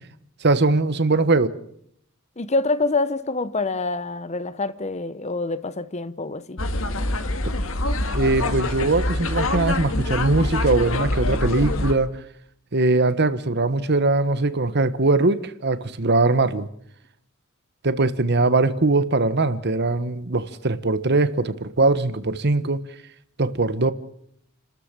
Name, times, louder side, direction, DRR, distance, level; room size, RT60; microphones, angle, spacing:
voice 1, 0.4-1.5 8.1-12.1 12.7-16.7 17.8-22.8 23.4-23.9, right 3 dB, 50° right, 1.2 m, -21 dB
voice 2, 2.4-6.6, left 3 dB, 30° left, 0.9 m, -26 dB
sound 1, 6.6-11.9, left 1 dB, 65° left, 2.0 m, -25 dB
29.5 x 13.5 x 7.5 m
head